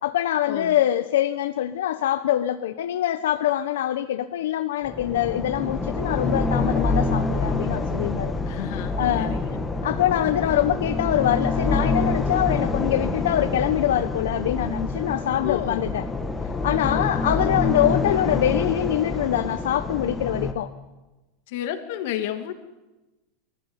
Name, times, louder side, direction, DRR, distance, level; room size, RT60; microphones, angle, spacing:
voice 1, 0.0-8.3 9.0-9.4 9.8-16.0 16.6-20.7, left 12 dB, 85° left, 8 dB, 1.0 m, -24 dB
sound 1, 4.8-20.5, left 3 dB, 5° left, 1.5 m, -26 dB
voice 2, 8.5-9.6 15.4-15.9 16.8-17.1 21.5-22.5, left 11 dB, 55° left, 6 dB, 2.6 m, -32 dB
23.0 x 15.0 x 9.9 m, 1.1 s
supercardioid pair, 170°, 0 cm